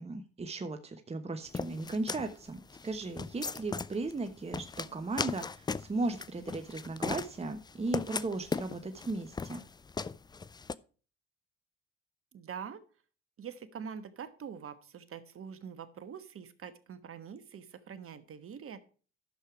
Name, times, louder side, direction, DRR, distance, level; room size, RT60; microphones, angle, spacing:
voice 1, 0.0-9.6, right 2 dB, 20° right, 8 dB, 1.0 m, -36 dB
sound 1, 1.5-10.7, left 4 dB, 15° left, 0.4 m, -38 dB
voice 2, 12.3-12.8 13.4-18.8, right 7 dB, 45° right, 12 dB, 1.3 m, -44 dB
11.0 x 6.7 x 4.8 m, 0.39 s
hypercardioid pair, 55°, 31 cm